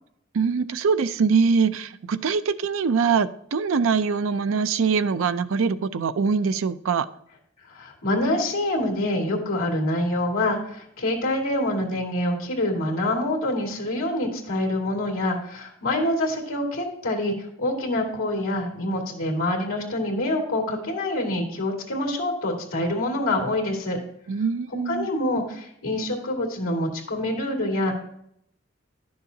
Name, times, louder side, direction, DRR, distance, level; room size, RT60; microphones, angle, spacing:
voice 1, 0.3-7.1 24.3-25.1, right 5 dB, 80° right, 13 dB, 0.4 m, -23 dB
voice 2, 7.7-17.3 17.6-24.0 24.9-27.9, left 1 dB, 85° left, 0 dB, 2.1 m, -26 dB
10.5 x 6.6 x 2.7 m, 0.71 s
head